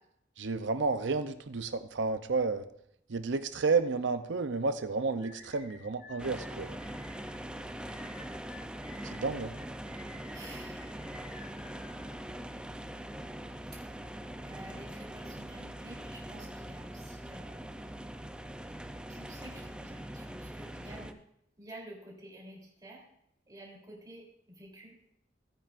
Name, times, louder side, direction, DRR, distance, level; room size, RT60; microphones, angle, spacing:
voice 1, 0.4-2.7 3.1-6.8 9.0-9.6, right 4 dB, 90° right, 10 dB, 0.7 m, -31 dB
sound 1, 5.2-12.6, left 2 dB, 55° left, 4.3 m, -53 dB
sound 2, 6.2-21.1, right 1 dB, 5° right, 0.5 m, -42 dB
voice 2, 10.3-11.1 13.7-13.8 14.4-17.9 19.1-21.2 21.6-23.0 23.5-25.0, right 1 dB, 20° right, -4 dB, 3.4 m, -50 dB
17.5 x 8.9 x 2.5 m, 0.77 s
head